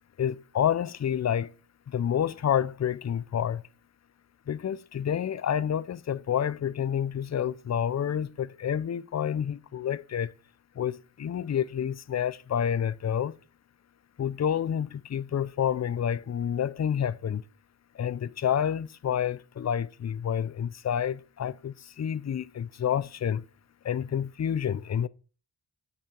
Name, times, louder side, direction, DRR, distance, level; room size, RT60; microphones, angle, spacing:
voice 1, 0.2-1.5 1.9-3.6 4.5-10.3 10.8-13.3 14.2-17.4 18.0-23.4 23.8-25.1, left 9 dB, 35° left, 0.5 m, -29 dB
8.3 x 5.4 x 4.4 m
cardioid pair, 40°, 48 cm